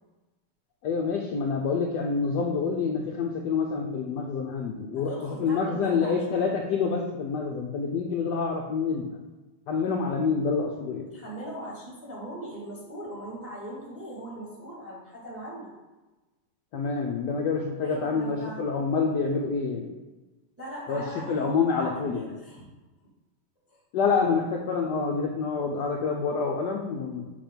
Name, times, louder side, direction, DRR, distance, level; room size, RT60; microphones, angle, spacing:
voice 1, 0.8-9.1 9.7-11.1 16.7-19.9 20.9-21.0 21.3-22.3 23.9-27.3, left 5 dB, 80° left, 0 dB, 0.9 m, -27 dB
voice 2, 4.9-6.5 11.1-15.7 17.8-18.6 20.6-22.7 23.7-23.8, equal, 10° right, -4 dB, 0.9 m, -40 dB
7.0 x 2.8 x 5.2 m, 1.2 s
omnidirectional pair, 2.4 m